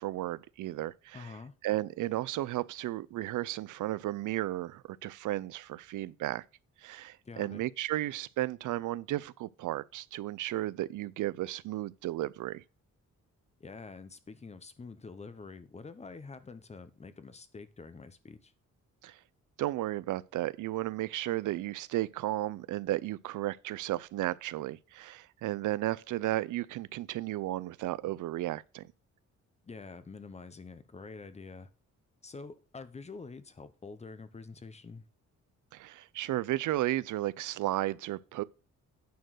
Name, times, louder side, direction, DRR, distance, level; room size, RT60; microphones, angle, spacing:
voice 1, 0.0-1.3 1.6-6.4 6.8-12.6 19.0-19.2 19.6-28.9 35.7-38.4, right 15 dB, 85° right, 0.5 m, -34 dB
voice 2, 1.1-1.5 7.2-7.6 13.6-18.5 29.6-31.7 32.2-35.1, left 4 dB, 20° left, 0.8 m, -46 dB
9.3 x 4.4 x 6.3 m
wide cardioid pair, 155°, 30 cm